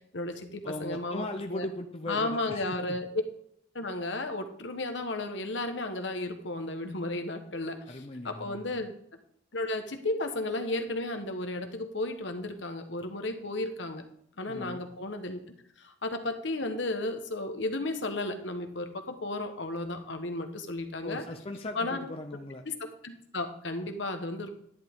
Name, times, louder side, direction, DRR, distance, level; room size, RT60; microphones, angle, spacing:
voice 1, 0.1-1.2 1.5-1.6 2.1-3.1 3.7-8.9 9.5-14.0 14.4-15.4 15.8-21.2 21.7-22.0 22.7-24.5, left 2 dB, 65° left, 6 dB, 1.3 m, -34 dB
voice 2, 0.6-3.0 7.9-8.6 14.5-14.8 21.0-22.6, left 1 dB, 30° left, 5 dB, 0.7 m, -38 dB
10.5 x 10.5 x 3.7 m, 0.68 s
head